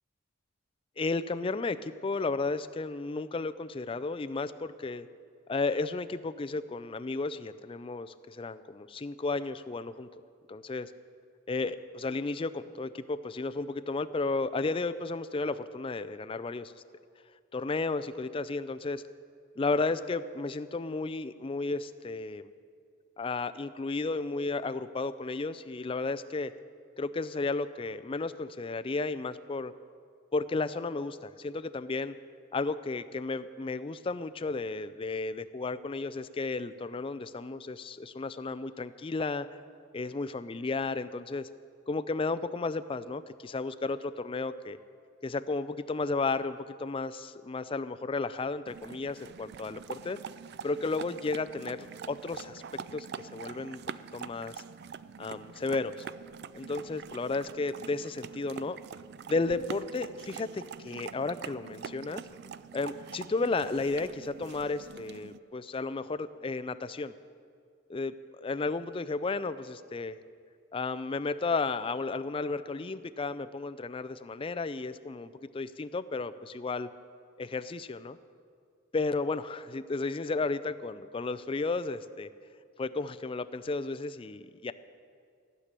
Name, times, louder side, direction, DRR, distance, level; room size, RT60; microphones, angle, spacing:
voice 1, 1.0-5.1 5.5-10.1 10.5-10.9 11.5-16.7 17.5-19.0 19.6-22.5 23.2-26.5 27.0-29.7 30.3-32.1 32.5-39.5 39.9-41.5 41.9-44.8 45.2-50.2 50.6-52.6 52.9-53.8 54.1-54.5 55.2-56.1 56.5-58.8 59.3-62.2 62.7-67.1 67.9-68.1 68.4-70.2 70.7-76.9 77.4-78.2 78.9-82.3 82.8-84.7, left 3 dB, 25° left, 12 dB, 0.4 m, -33 dB
sound 1, 48.7-65.4, right 7 dB, 50° right, 0.3 m, -44 dB
15.0 x 6.7 x 9.9 m, 2.3 s
head